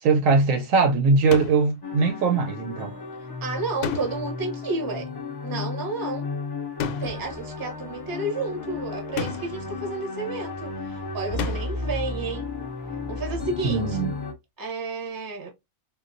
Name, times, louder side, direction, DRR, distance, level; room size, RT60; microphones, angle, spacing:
voice 1, 0.0-2.9 13.6-14.1, right 4 dB, 70° right, 0.9 m, -21 dB
sound 1, 1.3-1.7 3.8-4.5 6.8-7.3 9.2-9.7 11.4-11.9, left 6 dB, 90° left, 1.1 m, -32 dB
sound 2, 1.8-14.3, left 3 dB, 30° left, 0.4 m, -34 dB
voice 2, 3.4-5.1 5.4-6.3 7.0-12.5 13.1-14.0 14.6-15.5, right 3 dB, 20° right, 0.6 m, -31 dB
3.7 x 2.4 x 2.5 m
omnidirectional pair, 1.6 m